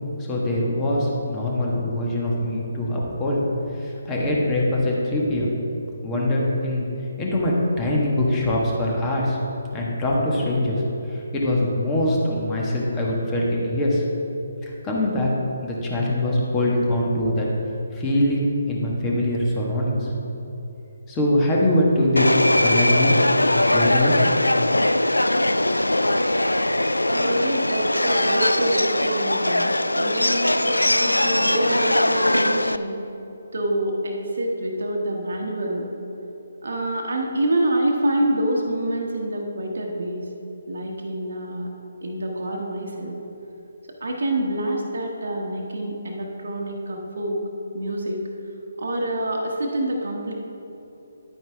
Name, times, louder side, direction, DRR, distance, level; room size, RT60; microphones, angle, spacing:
voice 1, 0.3-3.4 3.8-5.5 6.0-6.9 7.2-9.4 9.7-10.8 11.1-14.0 14.6-15.3 15.6-17.5 17.9-20.1 21.1-23.2 23.7-24.2, left 1 dB, 15° left, -4 dB, 1.7 m, -23 dB
Subway metro underground, 22.2-32.8, left 1 dB, 90° left, 0.3 m, -21 dB
voice 2, 27.1-33.0 33.5-35.9 36.6-40.3 40.7-41.7 42.0-43.1 44.0-47.4 47.7-48.2 48.8-50.3, right 1 dB, 65° right, 1 dB, 1.3 m, -26 dB
10.5 x 9.1 x 3.6 m, 3.0 s
figure-of-eight pair, 145°, 0 cm